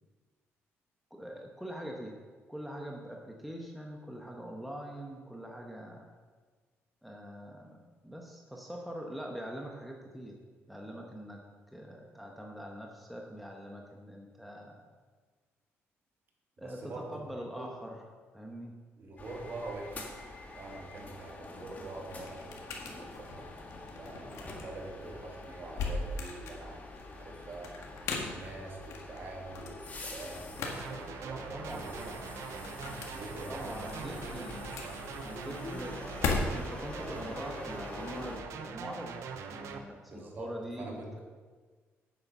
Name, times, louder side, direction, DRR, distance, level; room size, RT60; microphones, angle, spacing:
voice 1, 1.1-2.2 2.5-6.1 7.0-10.4 10.7-11.4 11.7-14.9 16.6-18.0 18.3-18.7 31.5-31.9 33.5-34.8 35.2-36.0 36.5-39.2 39.5-41.2, equal, ahead, 0 dB, 1.1 m, -43 dB
voice 2, 16.6-17.2 17.5-17.7 19.0-20.0 20.5-23.5 23.9-26.8 27.2-27.8 28.2-32.4 33.1-34.3 40.1-40.5 40.8-41.2, right 2 dB, 45° right, 0 dB, 2.3 m, -45 dB
sound 1, 19.2-38.4, left 2 dB, 35° left, 1.8 m, -46 dB
sound 2, 21.6-36.9, left 3 dB, 85° left, 1.6 m, -40 dB
sound 3, 30.6-39.8, right 6 dB, 80° right, 0.8 m, -43 dB
8.8 x 8.0 x 5.5 m, 1.5 s
cardioid pair, 110°, 5 cm